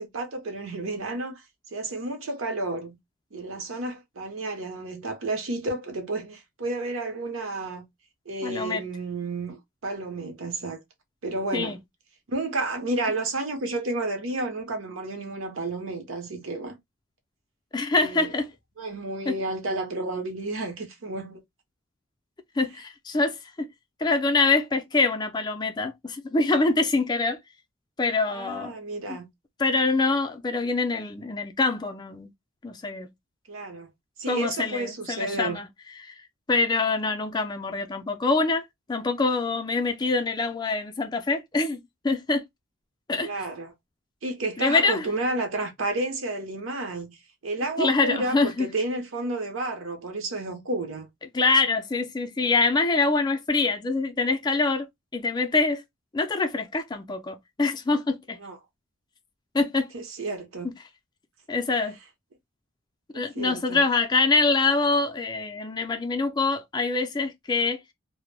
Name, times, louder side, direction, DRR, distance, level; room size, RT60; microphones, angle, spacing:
voice 1, 0.0-1.4 1.7-3.0 3.3-7.9 8.3-10.8 11.2-11.8 12.3-16.7 17.9-18.3 18.8-21.4 28.3-29.3 33.5-33.9 34.2-35.6 43.2-43.7 44.2-47.2 47.4-51.1 58.4-58.6 59.9-60.7 63.1-63.8, right 2 dB, 80° right, 0.7 m, -31 dB
voice 2, 8.4-8.8 11.5-11.8 17.7-18.5 19.3-19.4 22.6-23.7 24.0-27.4 28.0-28.7 29.1-29.2 29.6-32.3 32.6-33.1 34.3-35.7 36.0-36.2 36.5-42.4 43.1-43.3 44.6-45.1 47.8-48.7 51.3-54.9 55.1-55.8 56.1-58.4 59.5-59.9 60.6-60.7 61.5-62.0 63.1-67.8, left 3 dB, 20° left, 0.3 m, -25 dB
2.1 x 2.0 x 3.1 m
head